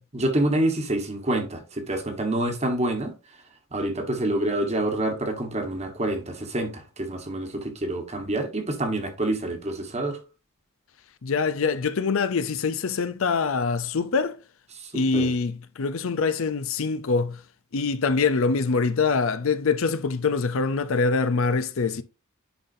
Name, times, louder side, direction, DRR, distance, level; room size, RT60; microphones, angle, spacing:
voice 1, 0.1-3.1 3.7-10.2 14.8-15.3, right 1 dB, 30° right, 1.3 m, -27 dB
voice 2, 11.2-14.4 14.9-17.4 17.7-22.0, left 4 dB, 65° left, 0.5 m, -24 dB
10.0 x 4.1 x 2.7 m
head